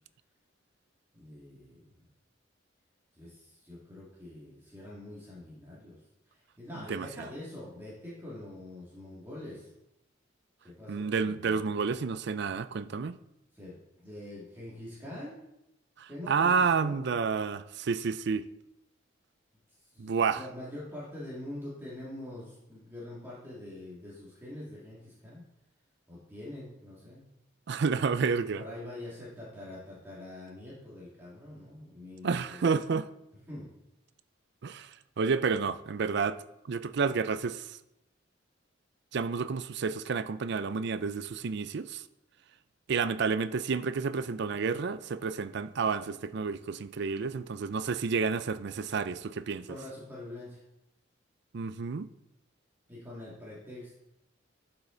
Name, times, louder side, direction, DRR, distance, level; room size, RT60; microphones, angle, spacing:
voice 1, 1.1-2.1 3.2-9.7 10.6-11.9 13.5-15.4 16.1-17.0 19.8-25.4 26.1-27.2 28.5-32.7 33.4-33.7 49.7-50.6 52.9-54.0, left 1 dB, 10° right, 2.2 m, -44 dB
voice 2, 10.9-13.2 16.0-18.4 20.0-20.4 27.7-28.6 32.2-33.1 34.6-34.9 35.2-37.8 39.1-42.0 42.9-49.7 51.5-52.1, right 5 dB, 60° right, 0.4 m, -30 dB
12.0 x 5.7 x 3.9 m
head